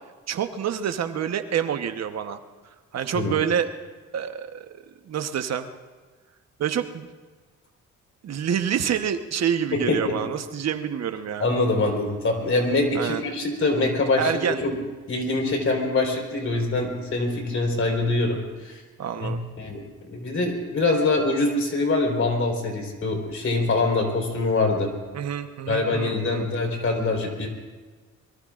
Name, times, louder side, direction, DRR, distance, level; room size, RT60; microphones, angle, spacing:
voice 1, 0.3-2.4 2.9-3.7 4.1-5.7 6.6-7.1 8.2-11.5 12.9-13.2 14.2-14.6 19.0-19.4 25.1-26.5, right 8 dB, 60° right, 8 dB, 1.2 m, -27 dB
voice 2, 9.7-10.1 11.4-14.7 15.1-18.8 19.2-19.8 20.1-24.9 25.7-27.5, left 2 dB, 45° left, 2 dB, 4.4 m, -24 dB
24.0 x 23.0 x 2.5 m, 1.4 s
cardioid pair, 90°, 30 cm